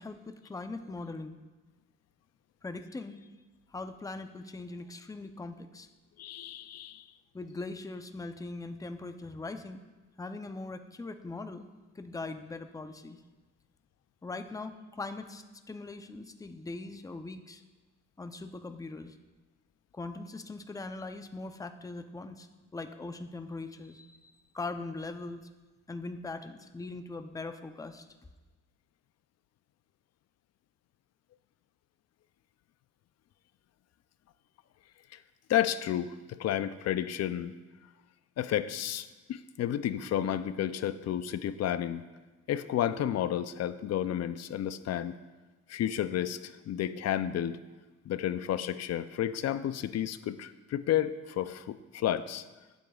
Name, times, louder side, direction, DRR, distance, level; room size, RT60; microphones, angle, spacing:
voice 1, 0.0-1.4 2.6-3.3 3.7-5.9 7.3-9.8 10.2-11.7 11.9-13.2 14.2-17.6 18.2-19.2 19.9-22.5 22.7-25.5 25.9-28.1, left 3 dB, 10° left, 8 dB, 0.6 m, -41 dB
voice 2, 6.2-7.0 35.1-35.2 35.5-37.5 38.4-42.0 42.5-45.2 45.7-47.6 48.1-52.4, left 11 dB, 60° left, 14 dB, 0.5 m, -31 dB
15.0 x 8.2 x 2.4 m, 1.2 s
cardioid pair, 90°, 30 cm